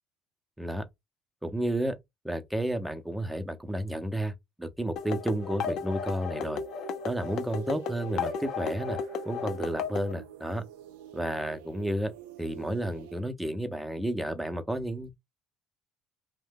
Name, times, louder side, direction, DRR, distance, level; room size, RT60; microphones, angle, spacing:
voice 1, 1.4-2.0 2.2-6.6 7.0-9.0 9.3-10.6 11.1-12.1 12.4-15.1, right 1 dB, 5° right, 0.6 m, -31 dB
sound 1, 5.0-10.1, left 6 dB, 65° left, 0.5 m, -34 dB
sound 2, 6.3-13.2, right 8 dB, 85° right, 0.4 m, -46 dB
2.6 x 2.1 x 3.7 m
supercardioid pair, 75°, 0 cm